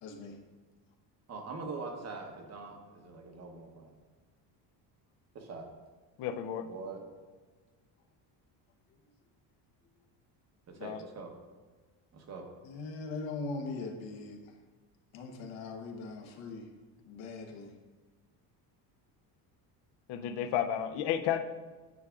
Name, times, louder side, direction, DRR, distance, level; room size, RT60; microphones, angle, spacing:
voice 1, 0.0-0.4 12.6-14.4 15.1-16.7 17.0-17.7, left 3 dB, 80° left, 2 dB, 1.1 m, -40 dB
voice 2, 1.3-3.9 5.3-5.7 6.6-7.0 10.7-11.3 12.1-12.5, right 4 dB, 35° right, 3 dB, 0.9 m, -43 dB
voice 3, 6.2-6.7 10.8-11.0 20.1-21.4, left 9 dB, 65° left, 8 dB, 0.6 m, -32 dB
9.5 x 4.8 x 2.4 m, 1.3 s
cardioid pair, 130°, 45 cm